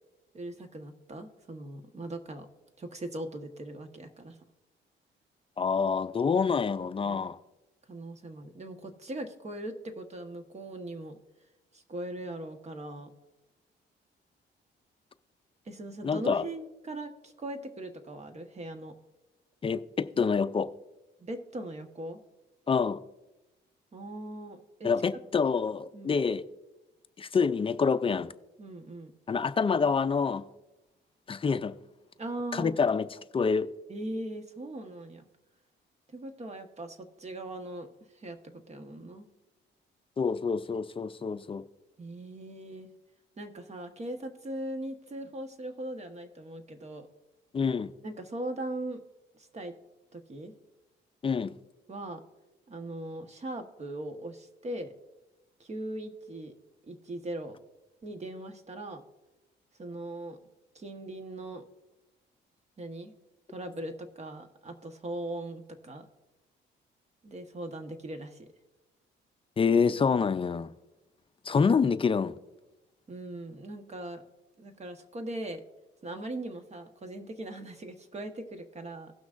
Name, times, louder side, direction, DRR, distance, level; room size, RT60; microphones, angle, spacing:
voice 1, 0.3-2.5 2.8-4.4 7.0-7.2 7.9-11.2 11.7-13.1 15.6-18.9 21.2-22.2 23.9-24.9 25.9-26.2 28.6-29.1 32.2-32.8 33.9-35.3 36.1-39.3 42.0-42.9 43.4-47.1 48.0-49.0 49.3-49.7 50.1-50.5 51.9-52.2 52.7-54.9 55.6-56.5 56.8-57.6 58.0-59.0 59.8-60.4 60.7-61.6 62.8-63.1 63.5-66.1 67.2-68.5 73.1-74.2 74.6-75.6 76.0-79.1, right 1 dB, 35° right, 1.2 m, -40 dB
voice 2, 5.6-7.4 16.0-16.4 19.6-20.7 22.7-23.0 24.8-26.5 27.2-28.3 29.3-30.5 31.3-31.7 32.5-33.1 33.3-33.7 40.2-41.6 47.5-47.9 51.2-51.6 69.6-70.7 71.4-72.3, left 5 dB, 25° left, 0.4 m, -27 dB
17.5 x 6.1 x 2.5 m
cardioid pair, 90°, 20 cm